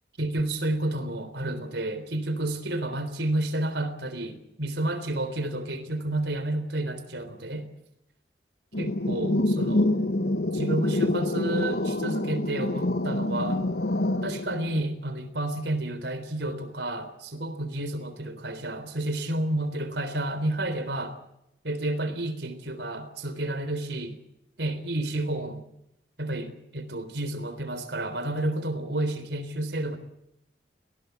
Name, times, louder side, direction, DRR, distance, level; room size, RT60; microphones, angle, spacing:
voice 1, 0.2-7.7 8.8-10.1 10.5-13.6 14.2-21.2 21.6-24.2 24.6-25.6 26.2-30.0, right 1 dB, 85° right, 11 dB, 3.7 m, -30 dB
sound 1, 8.7-14.8, left 1 dB, 65° left, 1.3 m, -26 dB
19.5 x 18.5 x 9.3 m, 0.83 s
head